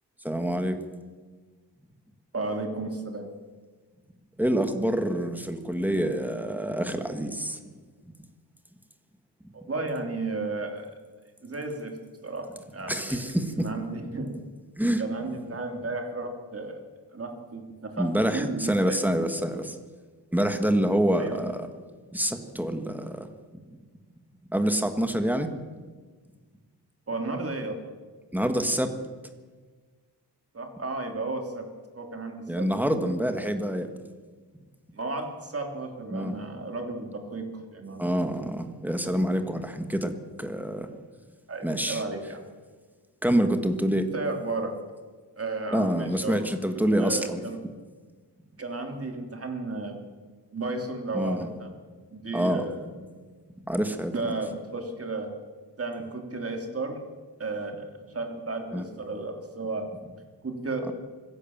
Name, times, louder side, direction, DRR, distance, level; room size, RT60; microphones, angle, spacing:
voice 1, 0.2-0.8 4.4-7.6 12.9-13.6 14.8-15.0 18.0-19.8 20.3-21.7 22.1-23.3 24.5-25.5 28.3-29.0 32.5-33.9 36.1-36.3 38.0-40.9 41.6-42.0 43.2-44.1 45.7-47.4 51.1-51.5 52.3-52.6 53.6-54.1 58.7-58.8, equal, 5° right, 7 dB, 1.6 m, -26 dB
voice 2, 2.3-3.3 9.5-10.9 11.4-12.0 12.2-14.3 15.0-16.8 17.1-19.1 21.2-21.4 27.1-27.8 30.5-31.7 31.9-32.9 34.9-38.2 41.5-42.4 44.1-44.7 45.4-46.5 46.7-47.6 48.6-50.0 50.5-51.7 52.1-52.9 54.1-55.3 55.8-57.0 57.4-59.8 60.4-60.9, right 3 dB, 35° right, 4 dB, 3.1 m, -33 dB
24.5 x 16.0 x 7.3 m, 1.4 s
wide cardioid pair, 170°, 42 cm